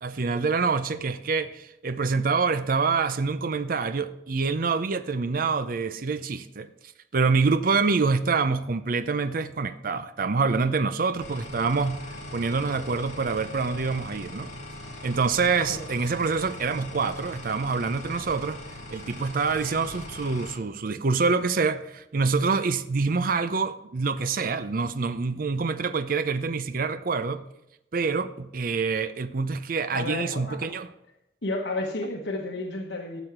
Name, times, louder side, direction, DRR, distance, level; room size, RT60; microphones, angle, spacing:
voice 1, 0.0-6.7 7.1-12.0 12.3-14.5 15.0-18.6 18.9-27.4 27.9-30.9, right 4 dB, 55° right, 0.5 m, -26 dB
sound 1, 11.2-20.6, left 1 dB, 40° left, 2.6 m, -40 dB
voice 2, 29.9-30.6 31.4-33.2, left 2 dB, 90° left, 1.1 m, -31 dB
12.5 x 7.0 x 6.0 m
head